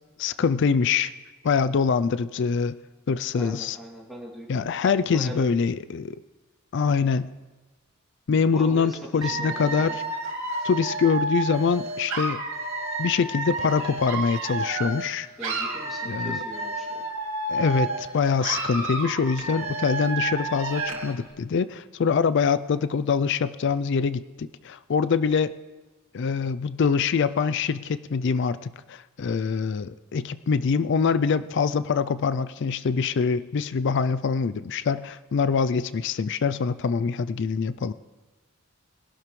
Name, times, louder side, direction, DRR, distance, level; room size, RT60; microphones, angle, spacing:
voice 1, 0.2-1.1 1.4-2.8 3.1-3.8 4.5-6.2 6.7-7.3 8.3-10.0 10.6-12.4 13.0-15.3 16.1-16.4 17.5-25.5 26.1-37.9, left 5 dB, 55° left, 14 dB, 0.4 m, -24 dB
voice 2, 3.3-5.5 8.5-10.0 15.4-17.0, right 1 dB, ahead, -4 dB, 2.5 m, -41 dB
Dog / Alarm, 9.2-15.1 15.4-18.1 18.4-21.1, right 2 dB, 65° right, 2.6 m, -30 dB
22.5 x 12.0 x 3.2 m, 1.2 s
head